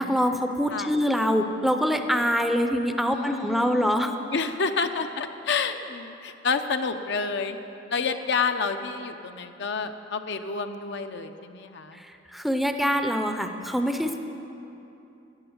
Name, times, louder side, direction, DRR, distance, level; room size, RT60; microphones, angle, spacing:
voice 1, 0.0-4.1 11.9-14.2, equal, ahead, 6 dB, 0.6 m, -25 dB
voice 2, 3.1-7.6 7.9-12.0, left 5 dB, 65° left, 7 dB, 0.7 m, -29 dB
13.0 x 9.1 x 7.9 m, 2.9 s
head